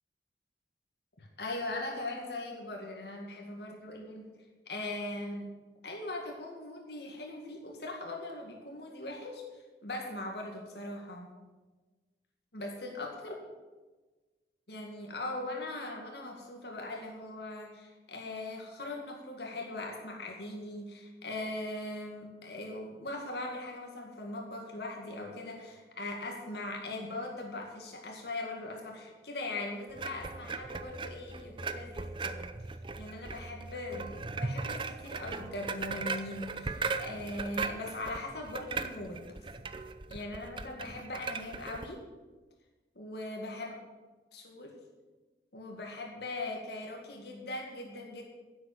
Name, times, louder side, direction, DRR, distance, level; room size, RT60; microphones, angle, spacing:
voice 1, 1.2-4.2 4.7-5.5 5.8-9.4 9.8-11.3 12.5-13.3 14.7-32.4 33.0-39.3 40.1-42.0 43.0-43.7 44.3-44.7 45.5-48.2, left 2 dB, 70° left, 1 dB, 2.0 m, -40 dB
sound 1, 29.9-41.9, right 4 dB, 30° right, 0.5 m, -38 dB
10.5 x 7.8 x 8.5 m, 1.3 s
head